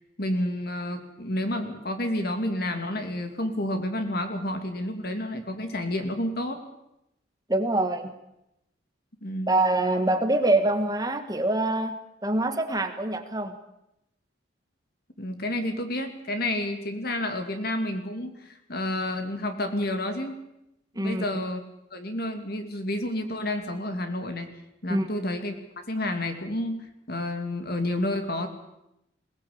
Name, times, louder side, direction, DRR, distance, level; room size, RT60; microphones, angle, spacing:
voice 1, 0.2-6.6 9.2-9.6 15.2-20.4 21.0-21.6 21.9-24.5 24.8-25.5 25.9-28.5, left 1 dB, 55° left, 6 dB, 2.7 m, -30 dB
voice 2, 7.5-8.1 9.5-13.6 20.9-21.2 24.9-25.1, right 2 dB, 20° right, 7 dB, 1.6 m, -25 dB
21.5 x 18.0 x 8.7 m, 0.85 s
head